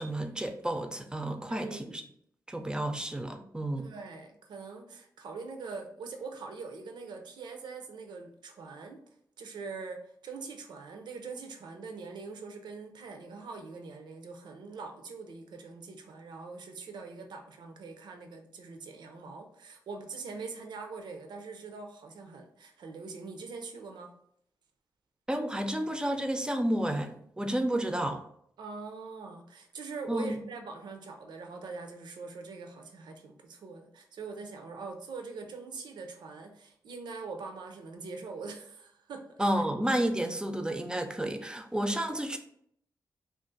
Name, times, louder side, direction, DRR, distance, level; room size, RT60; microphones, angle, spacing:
voice 1, 0.0-2.0 2.5-3.9 25.3-28.2 30.1-30.3 39.4-42.4, right 1 dB, 10° right, 6 dB, 0.4 m, -31 dB
voice 2, 1.5-2.0 3.8-9.0 9.4-24.1 28.6-39.2 39.5-39.6, right 4 dB, 90° right, 4 dB, 0.5 m, -43 dB
2.5 x 2.4 x 3.8 m, 0.70 s
cardioid pair, 80°, 7 cm